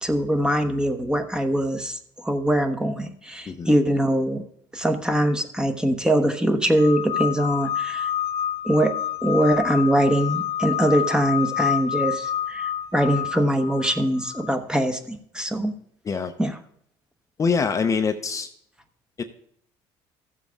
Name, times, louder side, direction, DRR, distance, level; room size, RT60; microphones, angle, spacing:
voice 1, 0.0-4.4 4.7-8.1 8.6-8.9 9.2-15.7 16.4-16.6, right 1 dB, 5° right, 7 dB, 1.0 m, -22 dB
sound 1, 6.8-14.6, left 10 dB, 70° left, 0.4 m, -28 dB
voice 2, 17.4-18.5 19.2-19.3, left 5 dB, 30° left, 7 dB, 0.7 m, -24 dB
14.0 x 7.4 x 3.5 m, 0.67 s
supercardioid pair, 95°, 11 cm